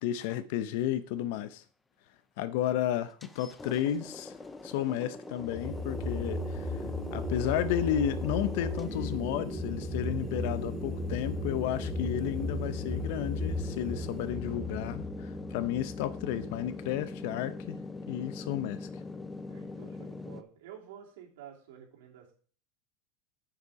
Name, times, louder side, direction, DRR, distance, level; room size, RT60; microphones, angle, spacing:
voice 1, 0.0-1.6 2.4-4.3 4.6-17.8 18.1-18.9, left 11 dB, 60° left, 0.8 m, -32 dB
sound 1, 3.2-20.4, left 3 dB, 10° left, 0.5 m, -42 dB
sound 2, 5.4-16.7, left 1 dB, 25° right, 2.4 m, -36 dB
voice 2, 19.5-22.3, right 9 dB, 80° right, 2.9 m, -50 dB
7.8 x 6.9 x 4.8 m
supercardioid pair, 160°, 0 cm